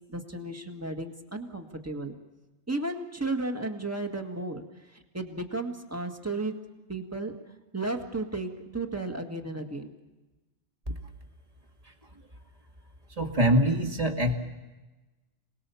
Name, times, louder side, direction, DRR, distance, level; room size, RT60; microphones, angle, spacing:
voice 1, 0.1-2.1 2.7-6.6 6.9-7.3 7.7-9.9, right 2 dB, 15° right, 4 dB, 1.7 m, -34 dB
voice 2, 13.2-14.3, equal, 30° right, 4 dB, 2.1 m, -24 dB
27.0 x 19.5 x 7.0 m, 1.1 s
omnidirectional pair, 1.2 m